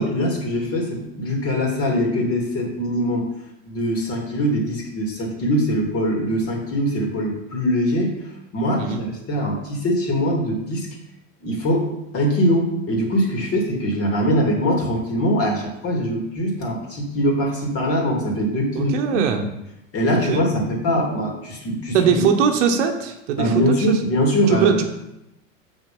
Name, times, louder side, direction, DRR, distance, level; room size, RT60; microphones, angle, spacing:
voice 1, 0.0-3.3 3.7-8.1 8.5-10.9 11.4-11.9 12.1-19.2 19.9-22.0 23.4-24.8, equal, 35° left, 0 dB, 2.9 m, -22 dB
voice 2, 18.7-19.5 20.3-20.4 21.9-23.5 23.9-24.0 24.5-24.8, right 7 dB, 60° right, 5 dB, 1.3 m, -20 dB
7.1 x 5.8 x 5.4 m, 0.85 s
hypercardioid pair, 100°, 40 cm